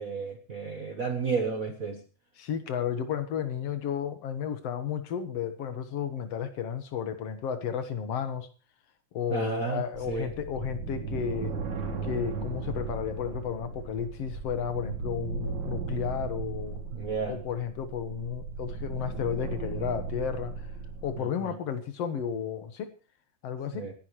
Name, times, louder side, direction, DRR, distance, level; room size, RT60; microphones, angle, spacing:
voice 1, 0.0-2.0 9.3-10.3 16.9-17.4 21.5-21.6 23.7-23.9, right 5 dB, 60° right, 0.8 m, -32 dB
voice 2, 2.4-8.5 9.1-11.5 12.0-16.8 17.3-20.7 21.0-22.9 23.4-23.9, left 8 dB, 60° left, 2.4 m, -33 dB
sound 1, 9.9-21.2, right 4 dB, 80° right, 4.2 m, -36 dB
27.0 x 10.5 x 3.2 m
omnidirectional pair, 3.3 m